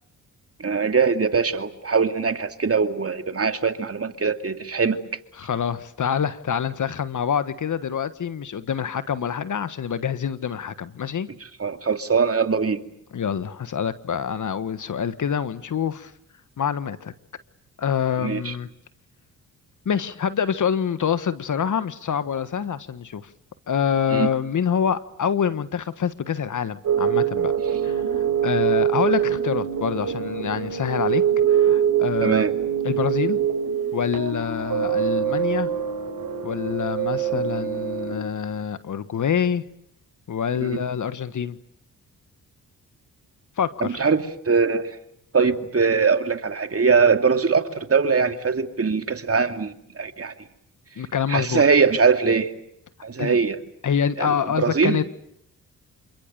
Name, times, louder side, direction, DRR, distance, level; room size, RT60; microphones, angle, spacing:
voice 1, 0.6-5.0 11.6-12.8 18.2-18.5 24.1-24.3 32.2-32.5 40.6-40.8 43.8-44.9 45.3-50.3 51.3-52.5 53.0-53.6 54.2-54.3 54.6-55.0, right 5 dB, 40° right, 7 dB, 2.6 m, -21 dB
voice 2, 5.4-11.3 13.1-16.1 16.6-17.1 17.8-18.7 19.8-23.3 23.7-27.5 27.8-28.0 28.4-31.2 31.5-32.4 32.8-33.4 33.9-35.7 36.4-39.6 40.3-41.6 43.6-44.1 51.0-51.6 53.2-53.4 53.8-55.0, left 7 dB, 55° left, 14 dB, 1.4 m, -26 dB
sound 1, 26.8-38.2, right 9 dB, 60° right, 5.4 m, -24 dB
28.0 x 26.0 x 6.9 m, 0.74 s
supercardioid pair, 50°, 36 cm